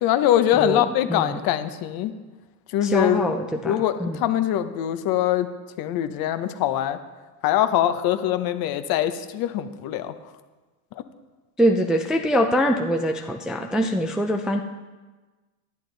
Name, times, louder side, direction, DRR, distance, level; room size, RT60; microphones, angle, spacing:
voice 1, 0.0-2.1 2.7-3.3 3.6-5.5 5.8-7.0 7.4-10.1, left 12 dB, 50° left, 10 dB, 1.0 m, -23 dB
voice 2, 0.5-0.8 1.1-1.4 2.8-4.2 11.6-14.6, equal, ahead, 3 dB, 0.4 m, -23 dB
11.0 x 10.5 x 4.0 m, 1.3 s
supercardioid pair, 115°, 47 cm